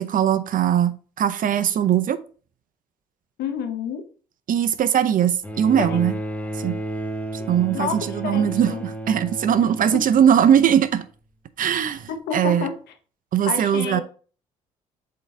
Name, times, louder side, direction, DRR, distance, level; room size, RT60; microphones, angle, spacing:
voice 1, 0.0-2.2 4.5-6.1 6.6-6.8 7.5-11.0 11.6-12.7 13.3-14.0, right 9 dB, 55° right, 0.7 m, -20 dB
voice 2, 3.4-4.0 5.8-6.0 7.4-7.5 7.7-8.8 9.6-10.0 12.3-12.7 13.5-14.0, left 7 dB, 75° left, 1.1 m, -29 dB
Bowed string instrument, 5.4-10.9 12.0-12.1, right 1 dB, 10° left, 1.0 m, -32 dB
7.8 x 3.8 x 3.3 m
hypercardioid pair, 55°, 17 cm